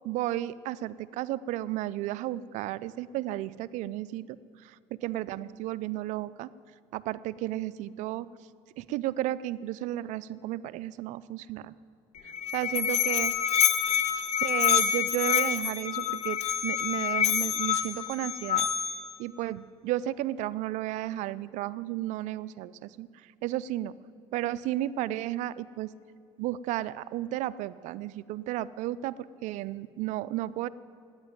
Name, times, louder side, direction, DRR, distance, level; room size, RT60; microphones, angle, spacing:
voice 1, 0.0-4.2 5.0-6.5 6.9-8.3 8.8-11.7 12.5-13.3 14.4-18.7 19.2-23.1 23.4-23.9 24.3-25.9 26.4-29.1 29.4-30.7, right 14 dB, 80° right, 17 dB, 0.5 m, -33 dB
Musical instrument, 12.2-19.1, left 9 dB, 60° left, 1.0 m, -27 dB
14.0 x 9.8 x 9.4 m, 2.3 s
supercardioid pair, 85°, 12 cm